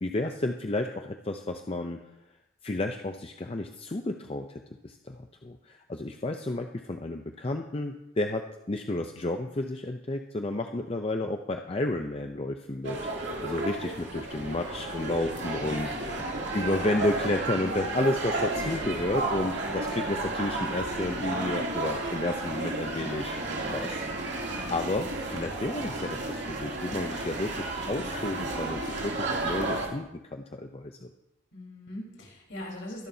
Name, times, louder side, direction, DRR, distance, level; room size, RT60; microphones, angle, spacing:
voice 1, 0.0-2.0 2.6-23.4 23.6-24.0 24.7-31.1, left 2 dB, 25° left, 4 dB, 0.5 m, -32 dB
sound 1, 12.8-29.9, right 2 dB, 55° right, 2.7 m, -32 dB
voice 2, 15.5-16.2 16.5-16.7 17.6-18.0 24.4-24.7 31.5-33.1, left 1 dB, 60° left, -2 dB, 4.1 m, -42 dB
22.5 x 11.0 x 2.7 m, 0.88 s
head